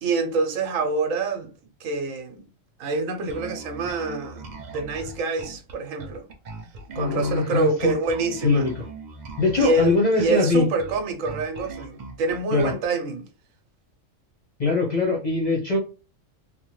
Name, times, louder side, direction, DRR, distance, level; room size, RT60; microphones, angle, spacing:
voice 1, 0.0-1.5 1.8-2.4 2.8-4.4 4.7-6.2 7.0-8.7 9.6-13.3, right 3 dB, 80° right, 1.0 m, -26 dB
Bass guitar, 3.3-12.9, right 3 dB, 60° right, 0.4 m, -40 dB
voice 2, 7.0-8.0 8.4-8.8 9.4-10.7 12.5-12.7 14.6-15.8, left 3 dB, 45° left, 0.6 m, -22 dB
3.0 x 2.1 x 3.0 m
omnidirectional pair, 1.4 m